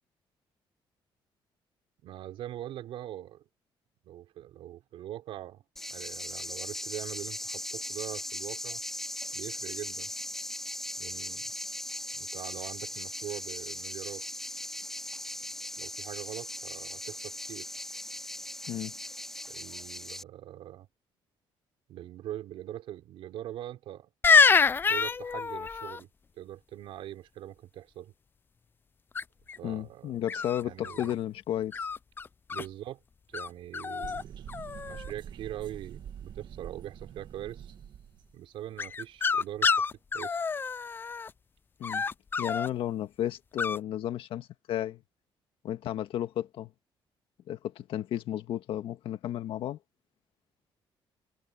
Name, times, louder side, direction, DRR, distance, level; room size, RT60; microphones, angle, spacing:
voice 1, 2.0-3.4 4.0-5.6 5.9-8.8 9.3-10.1 11.0-11.5 12.1-14.2 15.8-17.7 19.5-20.9 21.9-24.1 24.9-26.1 26.4-28.1 29.6-30.2 30.6-31.1 32.5-33.0 33.3-34.4 34.7-37.7 38.3-39.9 40.1-40.4, right 12 dB, 90° right, 3.4 m, -42 dB
sound 1, 5.8-20.2, left 1 dB, 5° left, 2.2 m, -39 dB
sound 2, 24.2-26.0 29.1-29.6 30.3-31.1 31.7-32.7 33.3-33.5 33.7-34.2 34.5-35.1 38.8-41.3 41.8-42.7 43.6-43.8, left 5 dB, 25° left, 0.4 m, -26 dB
voice 2, 29.6-31.9 41.8-42.1 42.4-45.0 45.6-46.7 47.5-49.8, left 11 dB, 75° left, 1.7 m, -33 dB
sound 3, 34.0-38.3, right 9 dB, 55° right, 1.8 m, -45 dB
cardioid pair, 150°, 9 cm